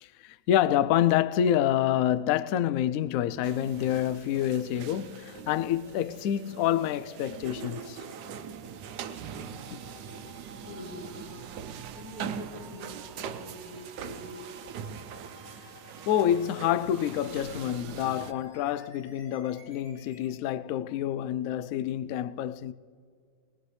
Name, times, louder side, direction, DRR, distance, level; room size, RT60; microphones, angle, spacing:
voice 1, 0.0-8.0 16.1-22.7, left 11 dB, 75° left, 0.7 m, -27 dB
sound 1, 3.4-18.3, right 7 dB, 70° right, 1.2 m, -42 dB
sound 2, 3.7-20.3, left 1 dB, 10° left, 3.4 m, -54 dB
voice 2, 10.6-14.5 14.8-15.0 15.4-15.5, left 1 dB, 50° left, 3.2 m, -45 dB
21.0 x 20.0 x 3.2 m
omnidirectional pair, 2.0 m